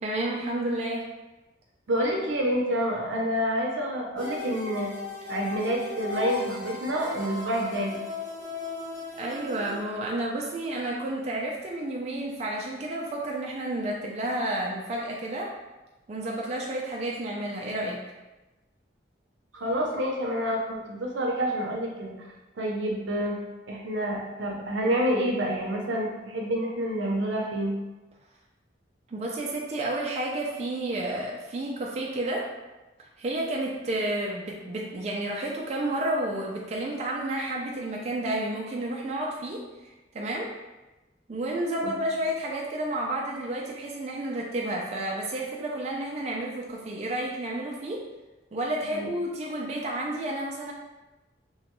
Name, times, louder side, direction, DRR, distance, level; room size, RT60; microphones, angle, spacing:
voice 1, 0.0-1.1 9.2-15.5 16.1-18.0 29.1-32.5 33.0-39.9 40.1-40.5 41.3-48.0 48.5-50.7, right 1 dB, 35° right, -2 dB, 0.3 m, -31 dB
voice 2, 1.9-4.9 5.3-8.0 19.5-22.3 22.6-23.4 23.7-27.8 41.8-41.9 48.9-49.1, equal, 80° right, -1 dB, 0.6 m, -28 dB
sound 1, 4.2-9.8, left 4 dB, 65° left, 1.1 m, -36 dB
2.9 x 2.3 x 2.9 m, 1.1 s
head